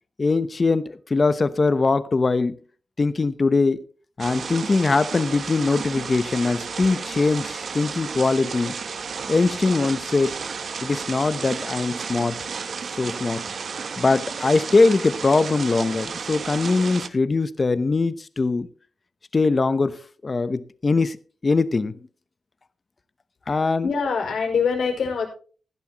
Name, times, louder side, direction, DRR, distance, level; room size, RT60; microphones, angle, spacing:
voice 1, 0.2-2.5 3.0-3.8 4.2-8.7 9.3-10.4 10.8-12.4 13.0-13.4 14.0-18.7 19.3-21.2 21.4-21.9 23.5-23.9, left 3 dB, 30° left, 0.9 m, -21 dB
sound 1, 4.2-17.1, right 5 dB, 55° right, 0.9 m, -32 dB
voice 2, 23.8-25.3, left 5 dB, 80° left, 4.7 m, -24 dB
16.0 x 11.5 x 3.0 m
wide cardioid pair, 135°, 0 cm